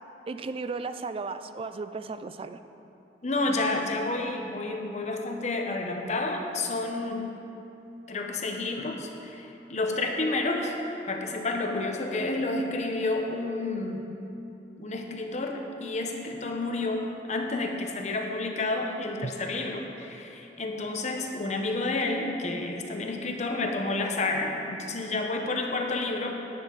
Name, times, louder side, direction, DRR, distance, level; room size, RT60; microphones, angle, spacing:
voice 1, 0.3-2.6 19.2-19.3, right 4 dB, 30° right, 10 dB, 0.3 m, -35 dB
voice 2, 3.2-7.3 8.1-10.8 11.1-14.0 14.8-26.4, left 2 dB, 40° left, 2 dB, 1.0 m, -30 dB
11.0 x 9.6 x 3.9 m, 2.9 s
head